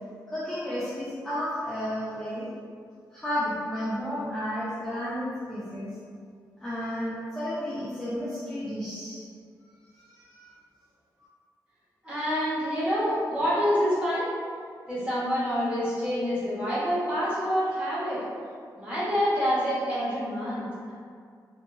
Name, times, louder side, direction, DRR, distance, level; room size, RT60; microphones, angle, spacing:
voice 1, 0.3-2.5 3.1-5.9 6.6-9.3 10.0-10.5, equal, 5° left, -11 dB, 0.4 m, -32 dB
voice 2, 12.0-14.3 14.9-18.2 18.7-20.9, equal, 20° right, -12 dB, 1.2 m, -27 dB
2.7 x 2.7 x 2.2 m, 2.2 s
wide cardioid pair, 160°, 7 cm